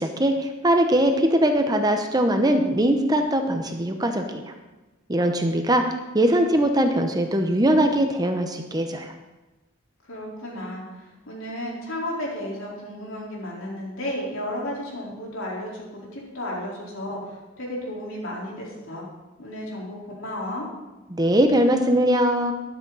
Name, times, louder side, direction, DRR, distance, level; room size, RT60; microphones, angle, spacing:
voice 1, 0.0-4.4 5.1-5.8 6.1-9.1 21.1-22.5, right 1 dB, 20° right, 5 dB, 0.9 m, -21 dB
voice 2, 10.1-15.9 16.1-19.0 19.4-20.7, left 1 dB, 75° left, -4 dB, 4.1 m, -33 dB
13.0 x 11.0 x 4.1 m, 1.1 s
head